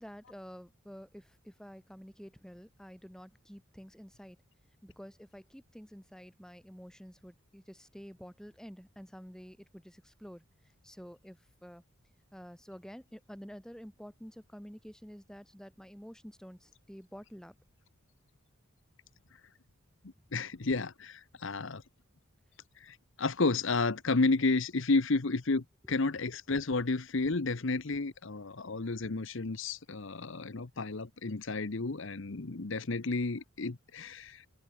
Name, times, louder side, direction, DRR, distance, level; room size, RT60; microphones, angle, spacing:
voice 1, 0.0-4.4 4.8-10.4 10.8-11.8 12.3-17.5, equal, 5° left, 4.4 m, -49 dB
voice 2, 20.3-21.8 22.8-34.5, left 3 dB, 60° left, 0.9 m, -31 dB
open air
head